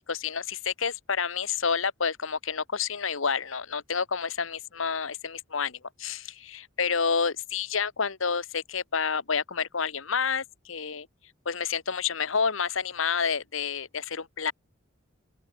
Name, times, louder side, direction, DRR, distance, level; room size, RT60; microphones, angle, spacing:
voice 1, 0.1-11.1 11.4-14.5, left 6 dB, 80° left, 1.3 m, -29 dB
open air
head